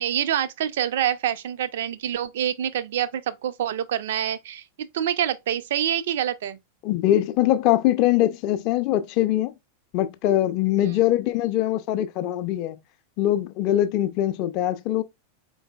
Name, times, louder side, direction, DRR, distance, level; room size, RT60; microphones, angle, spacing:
voice 1, 0.0-6.6 10.8-11.0, right 10 dB, 55° right, 0.4 m, -26 dB
voice 2, 6.8-9.5 9.9-12.8 13.2-15.0, left 13 dB, 40° left, 0.4 m, -22 dB
3.9 x 3.7 x 2.3 m
figure-of-eight pair, 90°, 0 cm